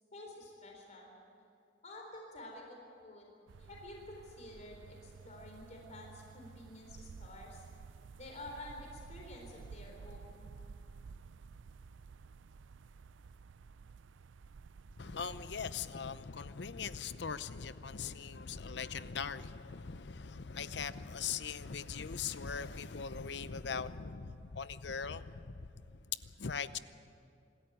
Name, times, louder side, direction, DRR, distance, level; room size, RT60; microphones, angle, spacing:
voice 1, 0.1-1.1 1.8-3.3 3.6-7.6 8.2-10.5, left 1 dB, 40° left, 0 dB, 3.8 m, -50 dB
sound 1, 3.5-15.6, right 5 dB, 90° right, 0.4 m, -53 dB
voice 2, 15.0-25.7 26.4-26.8, left 6 dB, 65° left, 14 dB, 0.7 m, -40 dB
25.5 x 13.5 x 9.2 m, 2.5 s
head